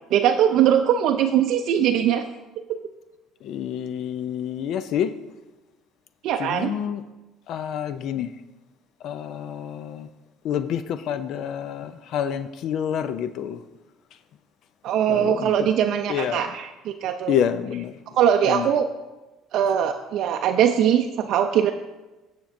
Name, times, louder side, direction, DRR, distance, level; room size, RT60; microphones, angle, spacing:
voice 1, 0.1-2.2 2.7-2.8 6.2-6.7 14.8-17.4 18.1-18.9 19.5-21.7, right 9 dB, 65° right, 4 dB, 0.4 m, -21 dB
voice 2, 3.4-5.1 6.4-7.0 7.5-8.3 9.0-10.1 10.4-13.6 15.1-15.5 16.1-16.5 17.3-18.0 18.4-18.7, left 9 dB, 65° left, 12 dB, 0.4 m, -28 dB
16.5 x 5.9 x 2.6 m, 1.1 s
supercardioid pair, 80°, 0 cm